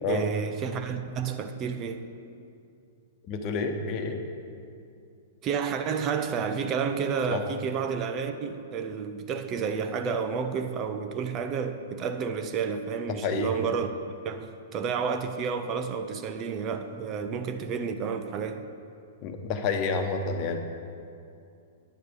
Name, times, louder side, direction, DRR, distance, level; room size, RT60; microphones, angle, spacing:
voice 1, 0.1-2.1 5.4-13.9 14.2-18.7, right 6 dB, 35° right, 0.7 m, -30 dB
voice 2, 3.3-4.2 7.3-7.4 13.2-13.5 19.2-20.6, left 4 dB, 40° left, 1.1 m, -29 dB
10.0 x 6.8 x 6.4 m
hypercardioid pair, 110°, 0 cm